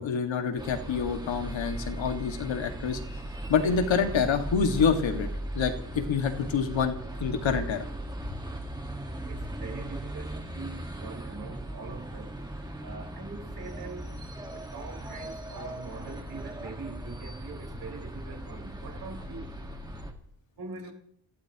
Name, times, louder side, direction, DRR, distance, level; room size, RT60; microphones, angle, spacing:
voice 1, 0.0-3.0 3.5-5.3 5.5-7.9 8.3-8.4, left 6 dB, 85° left, 2.0 m, -27 dB
sound 1, 0.6-20.1, right 1 dB, 10° right, 1.7 m, -38 dB
voice 2, 9.2-12.3 12.8-14.1 14.4-19.5 20.6-20.9, right 4 dB, 55° right, 5.1 m, -43 dB
29.0 x 16.5 x 3.0 m
wide cardioid pair, 175°, 45 cm